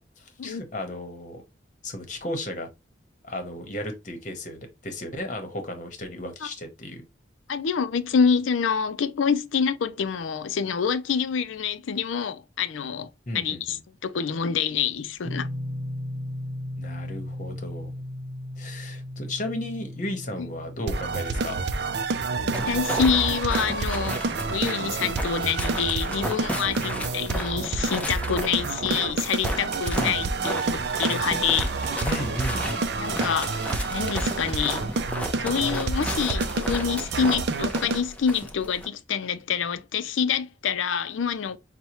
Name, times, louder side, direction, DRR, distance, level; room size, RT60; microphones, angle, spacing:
voice 1, 0.0-1.4 1.8-2.7 3.2-7.0 13.3-13.8 16.8-17.9 18.6-21.5 30.0-30.5 32.0-33.1, left 1 dB, 40° left, 1.0 m, -35 dB
voice 2, 7.5-13.1 13.3-15.5 20.4-20.5 22.4-24.2 24.5-31.7 33.0-33.6 33.9-34.9 35.4-41.6, left 6 dB, 90° left, 0.4 m, -27 dB
sound 1, 15.2-28.2, left 1 dB, 75° right, 0.9 m, -38 dB
sound 2, 20.9-38.0, right 4 dB, 60° right, 0.4 m, -29 dB
sound 3, 22.5-38.9, equal, 5° left, 0.5 m, -34 dB
5.4 x 2.2 x 3.0 m
head